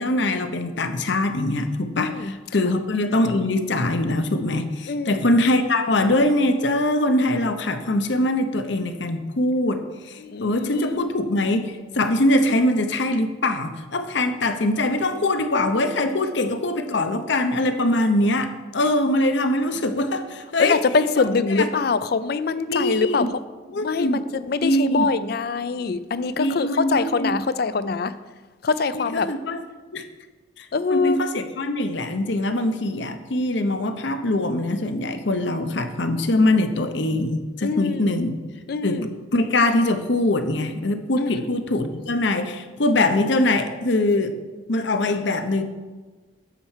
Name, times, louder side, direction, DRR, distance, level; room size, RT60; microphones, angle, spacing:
voice 1, 0.0-20.8 21.2-21.3 21.5-21.7 22.7-23.3 23.7-24.2 24.6-25.1 26.4-27.3 29.0-29.6 29.9-30.0 30.6-38.4 38.8-39.0 39.3-44.4 44.7-45.6, left 1 dB, 65° left, 8 dB, 0.8 m, -23 dB
voice 2, 2.0-2.3 2.6-2.7 4.9-5.2 10.2-11.1 20.6-23.4 23.8-28.2 28.6-29.3 30.7-31.2 37.6-38.1 38.7-39.1 41.2-41.7, left 4 dB, 50° left, 14 dB, 0.4 m, -24 dB
10.0 x 4.5 x 7.3 m, 1.3 s
head